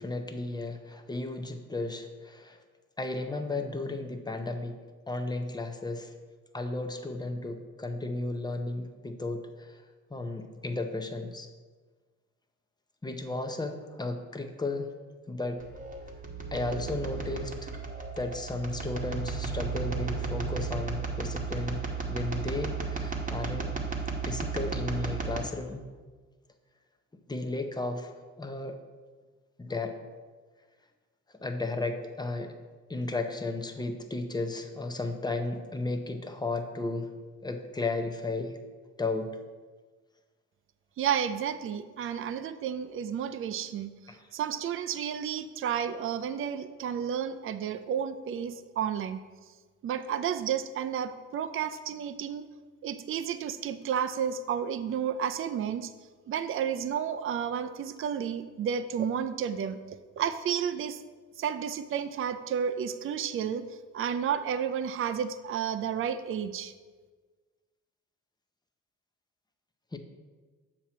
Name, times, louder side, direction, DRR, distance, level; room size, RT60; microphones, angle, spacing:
voice 1, 0.0-2.6 3.0-4.8 5.1-6.1 6.5-9.8 10.1-11.5 13.0-14.9 15.3-15.6 16.5-17.7 18.2-21.8 22.1-23.7 24.2-25.8 27.3-28.1 28.4-28.8 29.6-29.9 31.4-32.5 32.9-37.1 37.4-38.5 39.0-39.3 42.0-42.1 44.1-44.2 69.9-70.0, left 2 dB, 15° left, 6 dB, 0.6 m, -34 dB
sound 1, 15.6-25.4, right 4 dB, 25° right, 1.0 m, -34 dB
voice 2, 41.0-43.9 44.3-49.2 49.8-52.5 52.8-55.9 56.3-59.8 60.2-61.0 61.4-63.6 63.9-66.7, right 8 dB, 45° right, 10 dB, 0.4 m, -31 dB
7.2 x 2.9 x 6.0 m, 1.4 s
cardioid pair, 90°, 30 cm